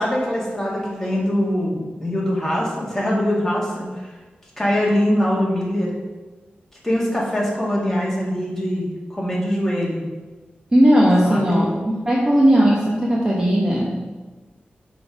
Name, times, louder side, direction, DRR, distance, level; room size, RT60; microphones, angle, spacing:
voice 1, 0.0-4.0 4.6-5.9 6.8-10.0 11.2-11.6, equal, 10° left, -5 dB, 2.2 m, -22 dB
voice 2, 10.7-11.7 12.0-14.2, equal, 20° right, -4 dB, 1.1 m, -17 dB
6.0 x 5.6 x 6.0 m, 1.3 s
wide cardioid pair, 130°, 4 cm